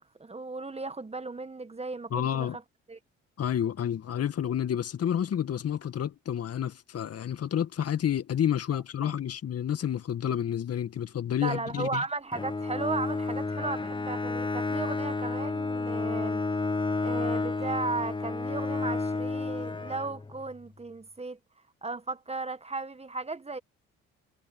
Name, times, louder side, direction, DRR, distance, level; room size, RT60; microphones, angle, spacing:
voice 1, 0.0-2.6 2.9-3.0 9.0-9.1 11.4-16.4 17.0-21.4 21.8-23.6, right 3 dB, 20° right, 1.4 m, -35 dB
voice 2, 2.1-2.6 3.4-12.0, left 9 dB, 55° left, 2.1 m, -30 dB
Bowed string instrument, 12.3-20.5, left 3 dB, 15° left, 1.0 m, -31 dB
supercardioid pair, 60°, 30 cm